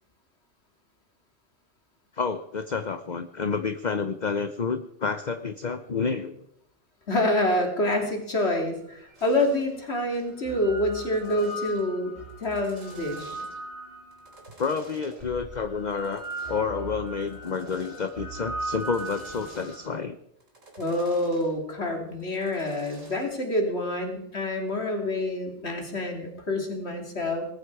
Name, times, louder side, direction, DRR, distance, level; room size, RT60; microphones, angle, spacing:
voice 1, 2.1-6.5 14.6-20.2, left 5 dB, 40° left, 10 dB, 0.9 m, -29 dB
voice 2, 7.1-13.4 20.8-27.5, left 1 dB, 55° left, 2 dB, 3.4 m, -27 dB
sound 1, 9.1-9.2 10.2-14.4 15.2-19.9, right 2 dB, 55° right, 4.3 m, -39 dB
sound 2, 9.1-9.8 10.1-10.3 10.8-11.9 12.3-13.7 14.1-15.2 15.9-16.7 17.1-18.2 18.6-20.0 20.4-21.5 22.2-23.4, right 2 dB, 90° right, 4.5 m, -49 dB
19.5 x 15.0 x 4.8 m, 0.74 s
omnidirectional pair, 1.3 m